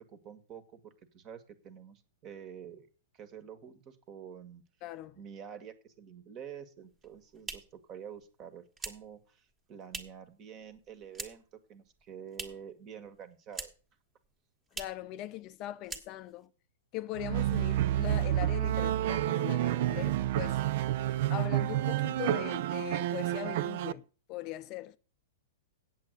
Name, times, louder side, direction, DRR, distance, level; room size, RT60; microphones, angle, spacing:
voice 1, 0.0-2.9 3.1-4.6 5.2-13.7, right 8 dB, 35° right, 1.7 m, -48 dB
voice 2, 4.8-5.2 14.7-16.5 16.9-20.6 21.3-25.0, left 15 dB, 40° left, 0.5 m, -40 dB
sound 1, 6.9-10.3 10.6-11.6 11.8-12.8 13.0-14.0 14.2-14.3 14.7-15.1 15.4-15.6 15.8-16.5, right 3 dB, 20° right, 1.6 m, -44 dB
sound 2, 17.1-23.9, right 13 dB, 55° right, 0.5 m, -29 dB
8.1 x 7.8 x 8.1 m
hypercardioid pair, 125°, 0 cm